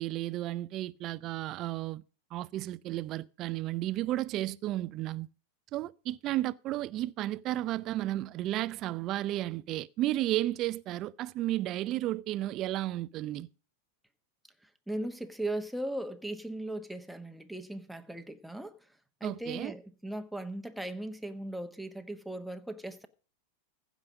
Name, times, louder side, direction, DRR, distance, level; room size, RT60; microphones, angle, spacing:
voice 1, 0.0-2.0 2.3-5.3 5.7-13.5 19.2-19.7, right 15 dB, 45° right, 0.5 m, -33 dB
voice 2, 14.9-18.8 19.2-23.1, right 1 dB, ahead, 1.2 m, -38 dB
15.5 x 5.1 x 7.2 m
hypercardioid pair, 105°, 0 cm